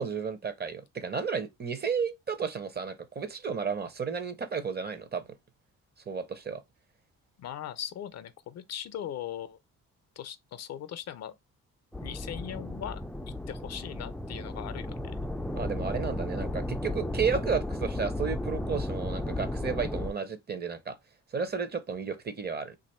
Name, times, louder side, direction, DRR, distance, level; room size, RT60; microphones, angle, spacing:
voice 1, 0.0-5.2 6.1-6.6 15.5-21.0 21.3-22.8, right 6 dB, 35° right, 0.7 m, -32 dB
voice 2, 7.4-9.6 10.2-11.3 12.0-13.0 13.3-15.1, left 10 dB, 60° left, 0.5 m, -39 dB
sound 1, 11.9-20.1, left 1 dB, ahead, 0.3 m, -34 dB
2.9 x 2.5 x 4.2 m
cardioid pair, 90°, 30 cm